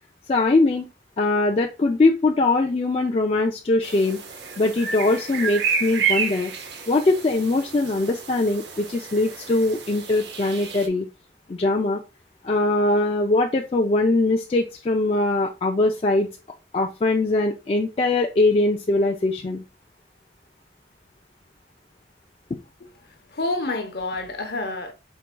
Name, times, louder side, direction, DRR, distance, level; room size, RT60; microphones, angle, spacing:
voice 1, 0.3-0.9 1.2-4.2 4.6-6.5 6.9-11.1 11.5-12.0 12.4-16.3 16.7-19.6, left 2 dB, 30° left, 0.3 m, -21 dB
sound 1, 3.8-10.9, right 6 dB, 75° right, 0.7 m, -30 dB
voice 2, 23.3-24.9, left 2 dB, 55° left, 0.8 m, -28 dB
4.5 x 4.0 x 2.2 m
head